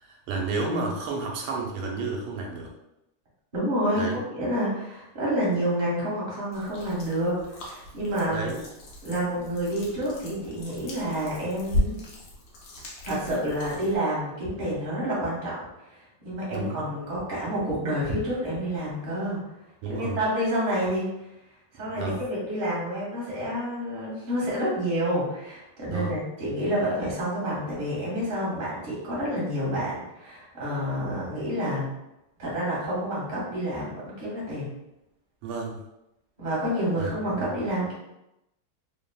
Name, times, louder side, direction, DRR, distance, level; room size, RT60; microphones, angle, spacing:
voice 1, 0.0-2.7 3.9-4.2 8.3-8.6 16.5-16.8 19.8-20.1 22.0-22.2 25.9-26.2 35.4-35.8 36.9-37.1, right 3 dB, 80° right, 0 dB, 1.5 m, -31 dB
voice 2, 3.5-8.5 9.0-11.9 13.0-19.4 19.9-21.3 21.7-31.9 32.4-34.7 36.4-37.9, equal, 40° right, -7 dB, 0.6 m, -29 dB
sound 1, 6.5-14.0, left 1 dB, 70° left, 1.2 m, -36 dB
3.6 x 2.0 x 2.2 m, 0.89 s
omnidirectional pair, 2.4 m